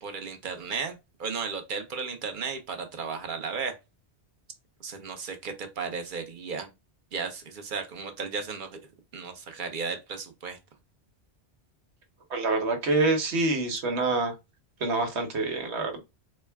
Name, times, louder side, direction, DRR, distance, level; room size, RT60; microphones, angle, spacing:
voice 1, 0.0-3.8 4.8-6.7 7.1-8.8 9.1-10.6, right 5 dB, 50° right, 0.9 m, -34 dB
voice 2, 12.3-14.3 14.8-16.0, right 3 dB, 85° right, 1.3 m, -26 dB
4.2 x 2.2 x 3.4 m
omnidirectional pair, 1.1 m